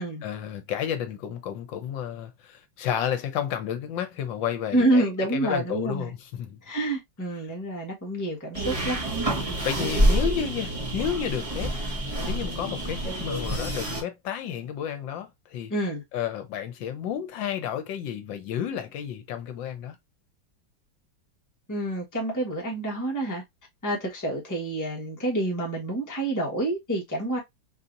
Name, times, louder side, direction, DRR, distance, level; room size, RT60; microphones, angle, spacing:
voice 1, 0.2-6.6 9.3-11.7 12.3-15.7 16.1-20.0, left 9 dB, 75° left, 1.3 m, -31 dB
voice 2, 4.7-6.1 6.6-9.0 15.7-16.0 21.7-23.4 23.8-27.4, right 1 dB, 10° left, 1.0 m, -28 dB
sound 1, 8.5-14.0, right 1 dB, 20° right, 1.1 m, -27 dB
4.1 x 2.7 x 2.5 m
omnidirectional pair, 2.1 m